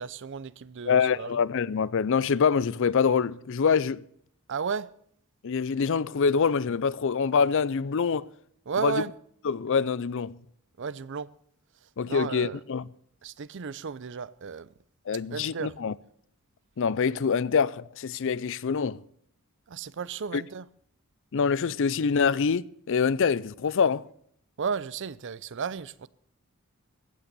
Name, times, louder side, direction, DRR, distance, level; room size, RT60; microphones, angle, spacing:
voice 1, 0.0-1.4 4.5-4.9 8.7-9.1 10.8-11.3 12.0-12.6 13.2-14.7 15.3-15.7 19.7-20.7 24.6-26.1, right 5 dB, 55° right, 0.5 m, -33 dB
voice 2, 0.9-4.0 5.4-8.3 8.8-9.0 9.4-10.3 12.0-12.8 15.1-15.9 16.8-19.0 20.3-20.4 21.3-24.0, left 6 dB, 60° left, 0.5 m, -25 dB
15.5 x 8.8 x 6.8 m
head